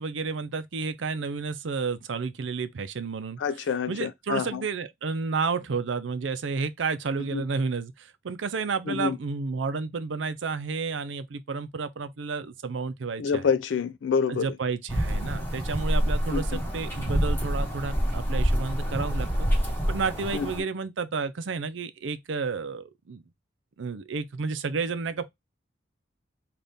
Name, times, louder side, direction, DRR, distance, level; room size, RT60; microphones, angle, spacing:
voice 1, 0.0-3.4 3.9-13.4 14.3-19.5 19.9-23.2 23.8-25.3, right 4 dB, 90° right, 0.5 m, -31 dB
voice 2, 3.4-4.6 7.3-7.4 8.9-9.2 13.2-14.5 16.3-16.6 20.3-20.5, left 6 dB, 75° left, 0.4 m, -27 dB
sound 1, 14.9-20.6, equal, 10° left, 1.1 m, -27 dB
4.0 x 2.5 x 3.5 m
head